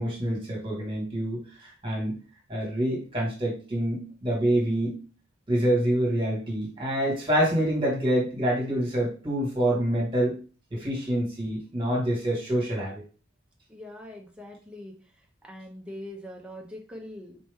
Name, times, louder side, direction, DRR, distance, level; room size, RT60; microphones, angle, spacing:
voice 1, 0.0-2.2 2.5-5.0 5.5-10.4 10.7-13.0, right 1 dB, 25° right, -2 dB, 1.7 m, -26 dB
voice 2, 13.7-14.9 15.4-17.4, left 1 dB, 5° right, 0 dB, 0.7 m, -42 dB
4.3 x 2.9 x 3.5 m, 0.36 s
head